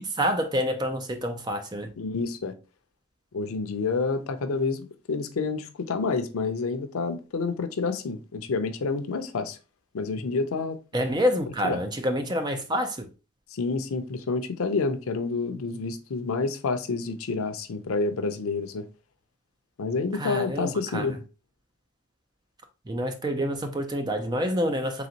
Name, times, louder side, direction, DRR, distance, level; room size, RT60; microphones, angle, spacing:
voice 1, 0.0-1.9 10.9-13.1 20.1-21.2 22.9-25.1, equal, 20° right, 0.4 m, -27 dB
voice 2, 2.0-2.5 3.3-9.6 9.9-10.8 11.6-11.8 13.5-18.8 19.8-21.1, left 4 dB, 90° left, 0.5 m, -28 dB
4.0 x 3.3 x 2.8 m
head